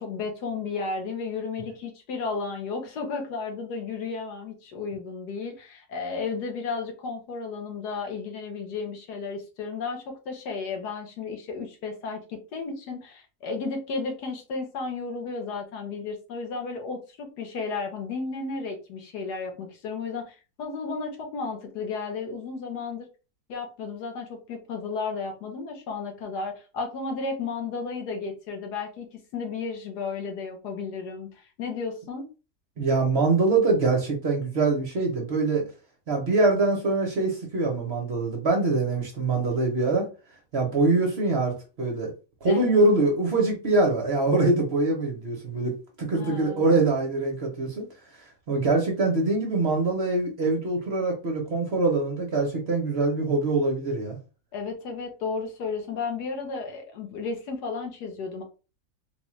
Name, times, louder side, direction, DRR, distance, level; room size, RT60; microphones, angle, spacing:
voice 1, 0.0-23.1 23.5-32.3 42.4-42.8 46.2-46.8 54.5-58.4, left 4 dB, 80° left, 1.5 m, -33 dB
voice 2, 32.8-35.6 36.1-40.1 40.5-42.1 42.4-47.9 48.2-54.2, right 3 dB, 50° right, 0.9 m, -24 dB
3.9 x 2.3 x 3.0 m
omnidirectional pair, 1.7 m